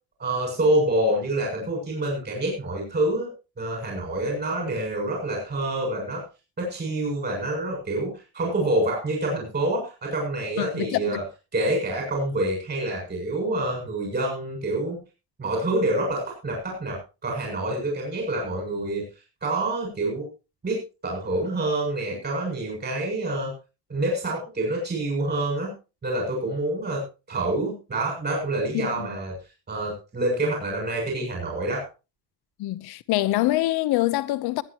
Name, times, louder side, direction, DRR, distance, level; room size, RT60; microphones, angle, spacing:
voice 1, 0.2-3.3 3.6-6.2 6.6-11.2 11.5-15.0 15.4-19.0 19.4-20.3 20.6-20.8 21.0-23.5 23.9-25.7 26.0-27.0 27.3-29.4 29.7-31.8, right 1 dB, 25° right, 7.4 m, -27 dB
voice 2, 10.6-11.2 28.7-29.1 32.6-34.6, left 16 dB, 75° left, 1.0 m, -25 dB
22.5 x 10.0 x 3.0 m
cardioid pair, 175°, 38 cm